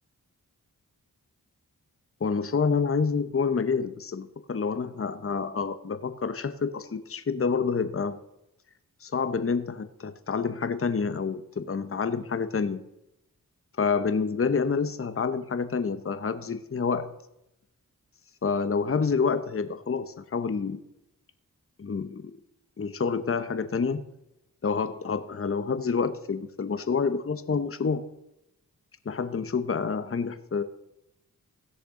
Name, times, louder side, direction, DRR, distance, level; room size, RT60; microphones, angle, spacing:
voice 1, 2.2-8.2 9.0-12.8 13.8-17.1 18.4-20.8 21.8-22.3 22.8-24.0 24.6-28.0 29.0-30.6, left 5 dB, 40° left, 11 dB, 0.9 m, -28 dB
16.5 x 6.6 x 3.8 m, 0.86 s
cardioid pair, 45°, 36 cm